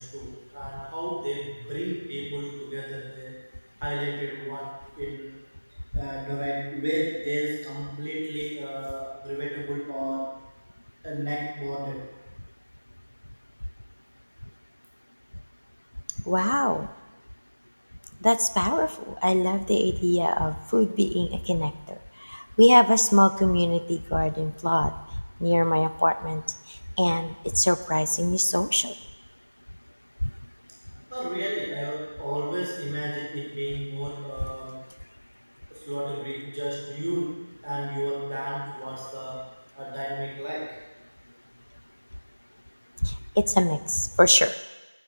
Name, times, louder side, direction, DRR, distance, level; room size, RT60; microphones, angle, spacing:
voice 1, 0.0-3.4 3.8-5.4 5.9-10.3 11.0-12.1 30.9-34.8 35.7-37.4 37.6-39.4 39.8-40.8, equal, 30° right, -5 dB, 1.9 m, -32 dB
voice 2, 16.3-16.9 18.2-24.9 25.4-26.4 26.7-28.9 30.2-30.3 43.0-44.5, left 1 dB, 45° left, 14 dB, 0.4 m, -23 dB
9.3 x 6.6 x 6.5 m, 1.1 s
figure-of-eight pair, 175°, 0 cm